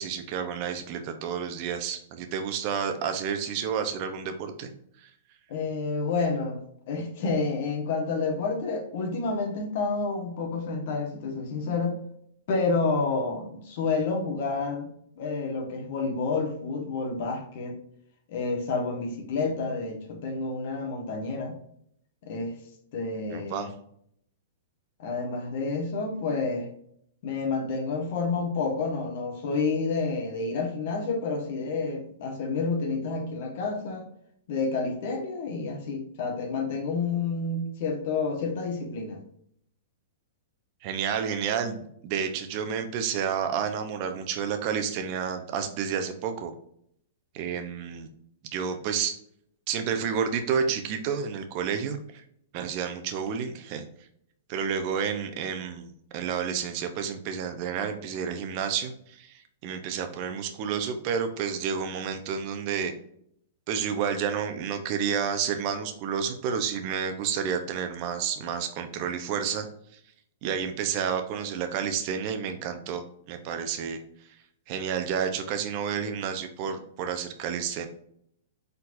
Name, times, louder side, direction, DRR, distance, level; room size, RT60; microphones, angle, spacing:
voice 1, 0.0-4.7 5.0-5.1 23.3-23.7 40.8-46.5 47.3-48.1 48.5-49.1 49.7-52.2 52.5-53.9 54.5-62.9 63.7-69.7 69.9-70.0 70.4-74.0 74.7-77.9, right 7 dB, 45° right, 6 dB, 0.7 m, -30 dB
voice 2, 5.5-6.6 6.9-12.0 12.5-14.9 15.2-17.8 18.3-21.6 22.2-22.6 22.9-23.7 25.0-26.7 27.2-34.1 34.5-39.2, left 4 dB, 55° left, 4 dB, 1.2 m, -29 dB
4.5 x 3.9 x 2.6 m, 0.68 s
hypercardioid pair, 130°, 0 cm